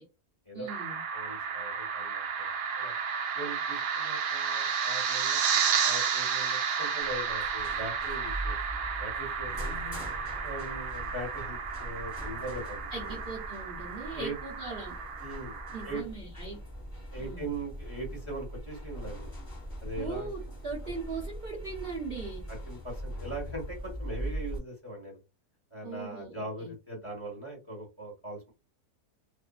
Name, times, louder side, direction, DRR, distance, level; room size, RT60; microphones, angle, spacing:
voice 1, 0.5-1.0 9.6-10.1 12.9-15.0 15.7-16.6 17.2-17.5 20.0-22.4 25.8-26.7, right 4 dB, 45° right, -3 dB, 0.8 m, -40 dB
sound 1, 0.7-16.0, right 6 dB, 85° right, 1.2 m, -32 dB
voice 2, 1.1-2.9 3.3-9.9 10.4-13.2 14.1-14.3 15.2-15.6 15.8-16.0 17.1-19.3 19.8-20.3 22.5-25.2 25.7-28.5, right 1 dB, 20° left, -3 dB, 1.2 m, -41 dB
sound 2, 7.0-24.6, equal, 5° right, 1.5 m, -41 dB
2.6 x 2.6 x 2.3 m, 0.28 s
omnidirectional pair, 1.7 m